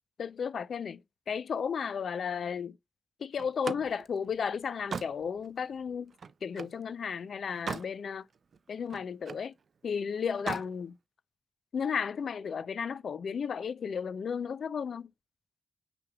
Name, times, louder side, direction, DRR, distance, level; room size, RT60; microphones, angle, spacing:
voice 1, 0.2-1.0 1.3-2.8 3.2-6.1 6.4-8.3 8.7-9.5 9.8-11.0 11.7-15.1, left 6 dB, 70° left, 0.4 m, -34 dB
Slam, 3.4-6.8 7.3-8.0 8.3-9.5 10.3-10.7, right 5 dB, 60° right, 0.4 m, -40 dB
5.8 x 3.4 x 2.3 m
wide cardioid pair, 110°, 0 cm